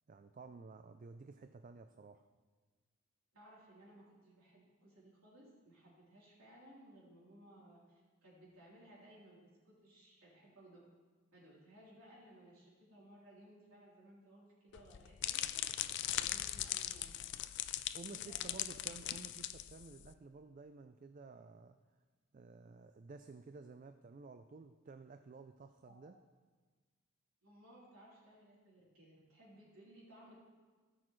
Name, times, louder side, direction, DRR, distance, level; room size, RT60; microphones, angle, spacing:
voice 1, 0.1-2.3 17.9-21.8 22.3-26.2, right 4 dB, 35° right, 9 dB, 0.3 m, -53 dB
voice 2, 3.3-9.4 9.6-10.8 11.3-17.3 18.0-18.8 25.9-26.0 27.4-30.4, right 1 dB, 75° right, -6 dB, 3.4 m, -60 dB
sound 1, 14.7-20.1, left 13 dB, 50° left, 0.3 m, -40 dB
17.5 x 6.3 x 3.1 m, 1.4 s
head